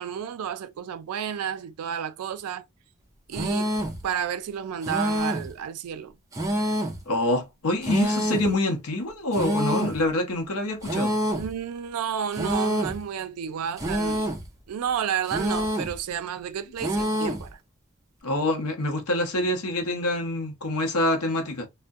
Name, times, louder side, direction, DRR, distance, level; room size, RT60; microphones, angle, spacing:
voice 1, 0.0-2.6 3.3-3.7 4.0-6.2 11.3-14.3 14.7-17.6, right 8 dB, 85° right, 0.4 m, -31 dB
sound 1, 3.3-4.0 4.8-5.5 6.3-7.0 7.8-8.5 9.3-10.0 10.8-11.5 12.3-13.0 13.8-14.5 15.3-16.0 16.8-17.5, equal, 15° right, 0.4 m, -27 dB
voice 2, 7.1-11.2 18.2-21.7, left 1 dB, 85° left, 0.7 m, -26 dB
2.5 x 2.1 x 2.3 m
head